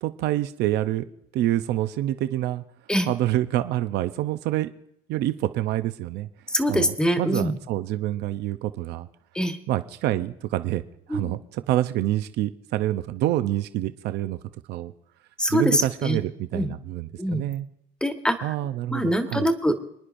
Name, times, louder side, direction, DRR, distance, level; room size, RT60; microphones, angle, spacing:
voice 1, 0.0-2.6 3.1-4.7 5.1-6.3 6.7-9.1 9.7-10.8 11.1-14.4 14.7-14.9 15.5-17.7 18.4-19.5, right 14 dB, 80° right, 10 dB, 0.6 m, -27 dB
voice 2, 6.5-7.5 9.3-9.6 11.1-11.3 15.4-16.2 16.5-16.7 17.2-17.4 18.0-18.5 18.9-19.7, equal, 5° left, 5 dB, 1.3 m, -24 dB
27.5 x 9.9 x 2.6 m, 0.74 s
cardioid pair, 110°, 17 cm